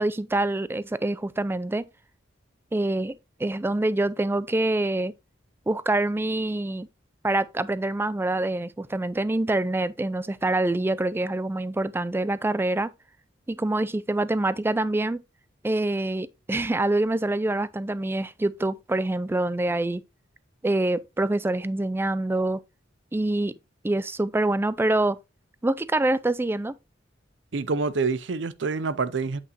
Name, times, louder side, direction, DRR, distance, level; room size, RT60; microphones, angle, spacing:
voice 1, 0.0-1.9 2.7-3.1 3.4-5.1 5.7-6.9 7.2-12.9 13.5-15.2 15.6-20.0 20.6-22.6 23.1-23.6 23.8-25.2 25.6-26.8, right 2 dB, 10° right, 0.3 m, -25 dB
voice 2, 27.5-29.4, right 4 dB, 70° right, 0.6 m, -27 dB
8.4 x 5.5 x 2.9 m
head